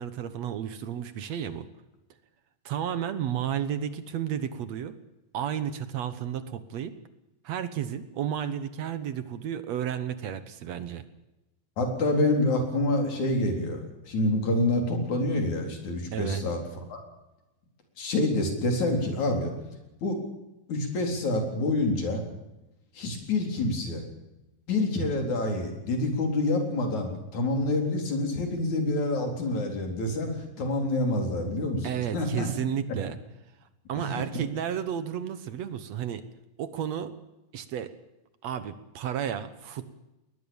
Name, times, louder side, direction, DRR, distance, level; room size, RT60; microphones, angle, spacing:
voice 1, 0.0-1.7 2.7-5.0 5.3-6.9 7.4-11.0 16.1-16.4 31.8-33.2 33.9-36.2 36.6-37.1 37.5-37.9 38.4-40.0, right 9 dB, 60° right, 12 dB, 1.9 m, -32 dB
voice 2, 11.8-13.8 14.0-16.6 16.9-17.0 18.0-19.5 20.0-20.2 20.7-22.2 23.0-24.0 24.7-32.5 34.0-34.4, left 2 dB, 55° left, 3 dB, 5.3 m, -27 dB
20.5 x 20.0 x 7.2 m, 0.98 s
omnidirectional pair, 4.1 m